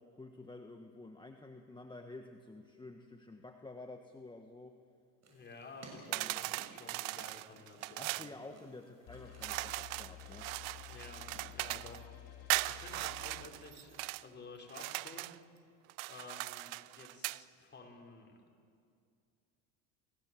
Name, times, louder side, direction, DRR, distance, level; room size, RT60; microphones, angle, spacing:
voice 1, 0.0-4.7 6.1-6.4 8.0-10.5, left 2 dB, 10° left, 4 dB, 1.4 m, -50 dB
sound 1, 5.2-11.4, right 2 dB, 40° right, 6.7 m, -59 dB
voice 2, 5.3-8.3 10.9-11.3 11.5-12.1 12.4-15.3 16.0-18.4, left 3 dB, 25° left, 0 dB, 5.2 m, -53 dB
sound 2, 6.1-8.3 9.4-12.0 12.5-14.2 14.7-15.4 15.9-17.4, right 22 dB, 85° right, 0.6 m, -39 dB
sound 3, 9.1-13.5, left 12 dB, 65° left, 6.5 m, -52 dB
30.0 x 16.5 x 7.8 m, 2.3 s
supercardioid pair, 90°, 39 cm